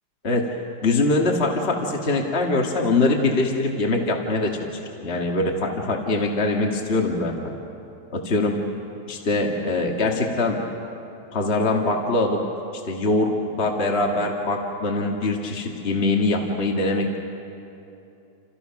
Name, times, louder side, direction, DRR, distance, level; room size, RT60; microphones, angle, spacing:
voice 1, 0.2-0.5 0.8-4.6 5.0-7.3 8.1-8.6 9.1-10.6 11.3-12.4 12.7-17.1, left 2 dB, 30° left, 0 dB, 1.1 m, -23 dB
29.0 x 28.5 x 5.9 m, 2.8 s
omnidirectional pair, 4.1 m